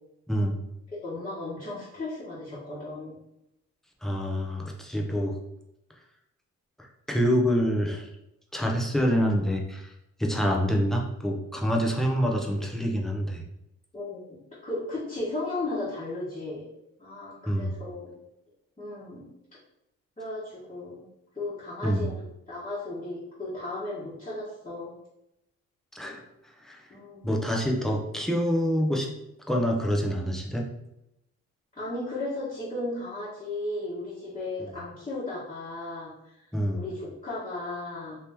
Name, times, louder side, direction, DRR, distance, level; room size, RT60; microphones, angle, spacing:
voice 1, 0.3-0.6 4.0-5.4 6.8-8.1 8.5-9.9 10.2-13.4 17.5-17.7 21.8-22.1 25.9-26.2 26.6-26.9 27.2-29.1 29.5-30.7 36.5-36.8, equal, ahead, 0 dB, 0.6 m, -26 dB
voice 2, 1.0-3.1 13.9-14.4 14.6-16.6 17.0-18.1 18.8-19.3 20.2-21.0 21.3-22.2 22.5-24.9 26.9-27.4 31.7-36.3 36.7-38.2, left 2 dB, 20° left, -10 dB, 1.2 m, -35 dB
2.9 x 2.9 x 3.4 m, 0.86 s
cardioid pair, 90°, 30 cm